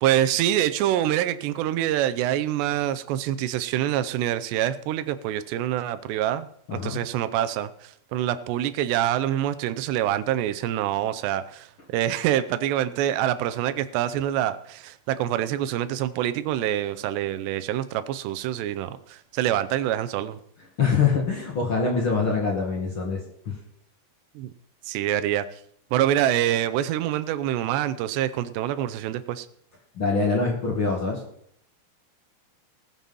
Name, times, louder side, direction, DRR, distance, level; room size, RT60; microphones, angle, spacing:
voice 1, 0.0-20.4 24.4-24.5 24.9-25.5 25.9-29.5, right 12 dB, 85° right, 12 dB, 2.9 m, -26 dB
voice 2, 6.7-7.0 20.8-23.6 29.9-31.2, left 4 dB, 45° left, -1 dB, 1.8 m, -24 dB
19.5 x 7.8 x 5.4 m, 0.68 s
omnidirectional pair, 4.8 m